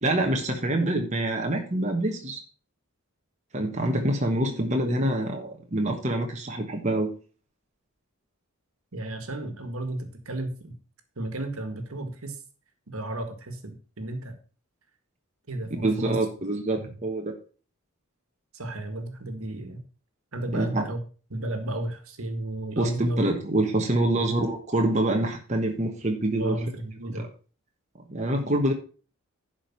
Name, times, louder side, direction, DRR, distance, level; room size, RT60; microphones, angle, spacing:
voice 1, 0.0-2.4 3.5-7.1 15.8-17.3 20.5-20.8 22.8-26.6 27.2-27.3 28.1-28.7, right 1 dB, 30° right, 2 dB, 1.3 m, -26 dB
voice 2, 8.9-10.8 11.1-12.4 12.9-14.3 15.5-16.2 16.7-16.9 18.5-19.8 20.3-21.0 21.3-23.2 24.1-24.2 26.4-27.3, right 1 dB, 75° right, 7 dB, 1.8 m, -33 dB
11.0 x 5.1 x 5.8 m, 0.38 s
head